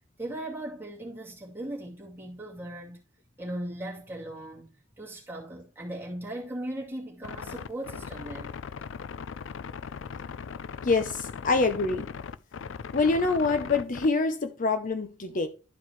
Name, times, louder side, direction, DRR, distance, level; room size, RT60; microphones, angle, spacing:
voice 1, 0.2-3.0 3.4-8.5, right 1 dB, 10° right, 2.2 m, -38 dB
sound 1, 7.2-14.1, left 6 dB, 85° left, 0.4 m, -39 dB
voice 2, 10.8-12.1 12.9-15.5, left 3 dB, 45° left, 0.6 m, -25 dB
12.0 x 4.7 x 3.1 m
head